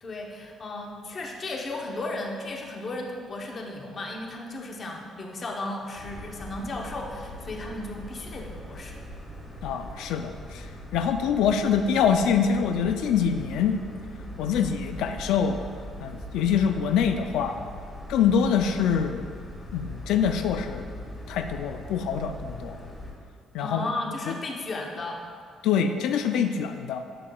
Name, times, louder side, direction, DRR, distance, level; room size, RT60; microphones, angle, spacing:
voice 1, 0.0-9.0 23.6-25.2, left 2 dB, 30° left, 1 dB, 0.8 m, -35 dB
sound 1, 5.9-23.1, equal, 15° left, 1.6 m, -41 dB
voice 2, 9.6-13.8 14.4-15.6 16.0-17.6 18.1-19.3 19.7-20.9 21.3-22.8 23.5-23.9 24.3-24.4 25.6-27.1, left 7 dB, 90° left, 6 dB, 0.3 m, -25 dB
11.0 x 6.6 x 2.3 m, 2.2 s
cardioid pair, 165°, 0 cm